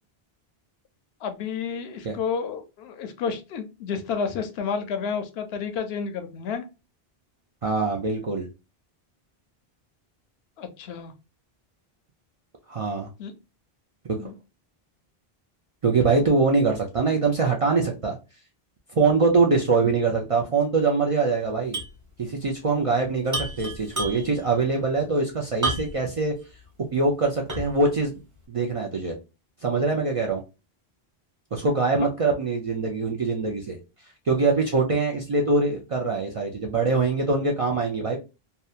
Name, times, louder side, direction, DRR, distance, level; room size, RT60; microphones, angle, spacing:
voice 1, 1.2-6.6 10.6-11.1 13.2-13.3 14.2-14.3, left 6 dB, 80° left, 8 dB, 0.8 m, -30 dB
voice 2, 7.6-8.5 12.7-13.1 14.1-14.3 15.8-18.2 19.0-21.8 22.2-26.3 26.8-28.2 28.5-29.1 29.6-30.4 31.5-33.8 34.3-38.2, right 4 dB, 50° right, 0 dB, 0.4 m, -23 dB
sound 1, 21.7-22.0 22.3-22.4 23.3-24.4 25.6-26.1 26.6-26.7 27.5-27.9, right 1 dB, 20° right, 0.8 m, -30 dB
2.8 x 2.2 x 2.3 m, 0.28 s
omnidirectional pair, 1.0 m